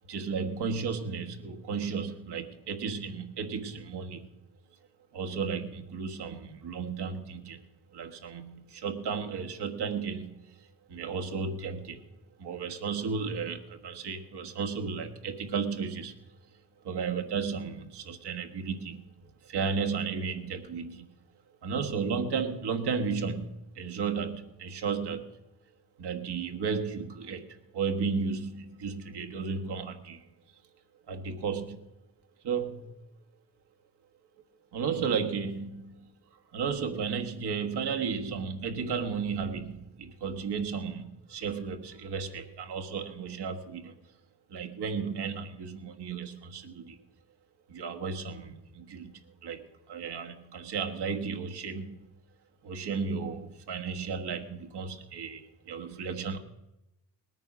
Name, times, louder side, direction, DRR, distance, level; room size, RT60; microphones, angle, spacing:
voice 1, 0.1-4.4 5.1-7.6 7.9-10.6 10.9-12.0 12.4-16.2 16.8-19.0 19.4-21.2 21.6-25.3 26.0-30.2 31.1-31.8 32.4-33.0 34.7-36.1 36.5-44.0 44.5-47.0 47.7-52.1 52.6-56.4, right 5 dB, 80° right, 5 dB, 1.5 m, -34 dB
19.0 x 9.1 x 6.2 m, 0.93 s
supercardioid pair, 55°, 40 cm